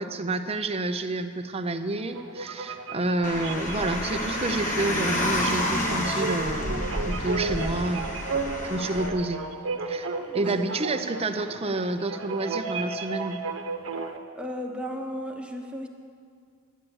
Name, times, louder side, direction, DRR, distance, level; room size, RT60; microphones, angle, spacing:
voice 1, 0.0-8.1 8.6-9.4 9.9-13.4, right 2 dB, 30° right, 8 dB, 0.7 m, -29 dB
sound 1, 2.1-14.2, right 3 dB, 90° right, 1.0 m, -34 dB
Car, 3.2-9.1, left 1 dB, 40° left, 1.3 m, -29 dB
voice 2, 14.3-15.9, equal, 5° right, 2 dB, 1.1 m, -35 dB
10.5 x 10.0 x 7.9 m, 2.2 s
head